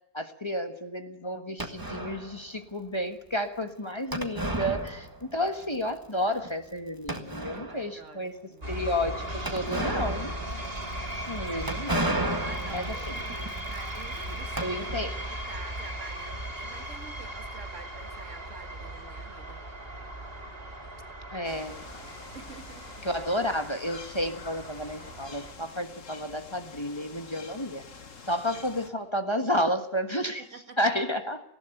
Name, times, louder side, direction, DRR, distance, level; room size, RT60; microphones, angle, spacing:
voice 1, 0.1-8.4 8.6-9.2 9.5-10.3 11.3-12.1 12.7-13.0 14.6-15.1 21.3-21.8 23.0-27.8 28.3-30.5 30.8-31.4, equal, 20° left, 7 dB, 1.4 m, -31 dB
sound 1, 1.6-2.4 4.1-5.5 5.7-5.8 6.4-6.5 7.1-7.9 9.4-15.3, right 1 dB, 15° right, 1.8 m, -33 dB
voice 2, 7.5-8.8 12.2-19.6 22.3-22.8 30.4-30.9, right 4 dB, 70° right, 7 dB, 2.1 m, -48 dB
sound 2, 8.6-25.5, right 1 dB, 50° right, 4.0 m, -38 dB
sound 3, 21.4-28.9, left 5 dB, 80° left, 1.9 m, -47 dB
19.0 x 16.5 x 9.1 m, 0.80 s
omnidirectional pair, 1.3 m